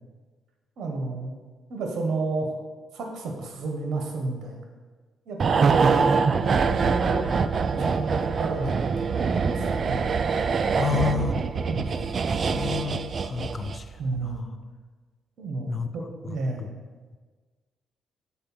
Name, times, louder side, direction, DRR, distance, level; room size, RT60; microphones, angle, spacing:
voice 1, 0.8-1.3 1.7-2.6 2.9-4.6 5.3-6.1 6.4-10.1 10.9-11.4 11.7-12.0 14.0-14.5 15.4-16.8, right 3 dB, 70° right, 2 dB, 1.3 m, -31 dB
sound 1, 5.4-13.9 14.2-14.4, right 5 dB, 45° right, 0.3 m, -24 dB
voice 2, 10.8-11.4 12.4-14.4 15.7-15.9 16.2-16.7, left 7 dB, 35° left, 9 dB, 0.5 m, -31 dB
6.8 x 4.2 x 5.7 m, 1.4 s
cardioid pair, 90°, 0 cm